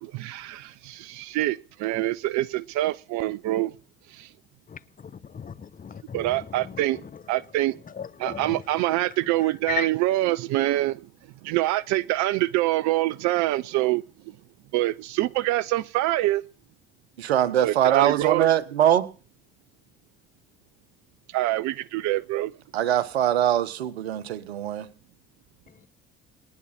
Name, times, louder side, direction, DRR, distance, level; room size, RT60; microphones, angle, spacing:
voice 1, 0.0-3.7 4.1-4.3 6.1-7.0 7.3-7.8 8.2-11.0 11.4-14.0 14.7-16.4 17.6-18.5 21.3-22.5, right 16 dB, 60° right, 0.7 m, -25 dB
voice 2, 4.7-6.3 6.6-6.8 7.9-8.6 9.7-9.9, left 6 dB, 25° left, 1.1 m, -35 dB
voice 3, 17.2-19.1 22.7-24.9, right 11 dB, 85° right, 1.2 m, -22 dB
29.0 x 9.8 x 4.3 m
hypercardioid pair, 60°, 31 cm